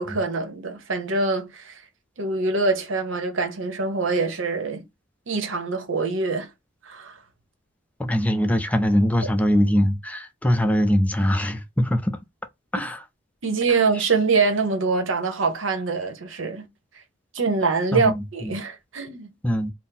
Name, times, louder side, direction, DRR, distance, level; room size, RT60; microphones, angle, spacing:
voice 1, 0.0-1.8 2.2-4.8 5.3-6.5 6.8-7.2 13.4-16.7 17.3-19.3, right 4 dB, 70° right, 0.9 m, -24 dB
voice 2, 8.1-12.1 12.7-13.0 14.0-14.1 17.9-18.5 19.4-19.7, equal, 5° left, 0.5 m, -22 dB
4.1 x 2.0 x 3.8 m
head